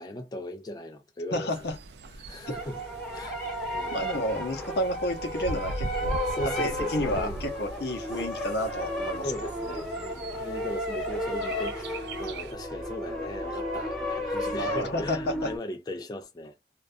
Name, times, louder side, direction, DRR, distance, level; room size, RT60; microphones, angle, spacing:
voice 1, 0.0-1.7 2.3-2.8 3.1-3.4 3.7-4.0 6.3-7.5 9.2-16.5, left 1 dB, 20° left, 0.3 m, -38 dB
voice 2, 1.3-1.8 3.9-6.2 6.6-9.3 14.6-15.5, left 1 dB, 70° left, 0.7 m, -31 dB
Bird, 1.5-12.5, right 2 dB, 70° right, 0.4 m, -41 dB
sound 1, 2.5-15.6, equal, ahead, 0.9 m, -33 dB
2.2 x 2.2 x 2.5 m
head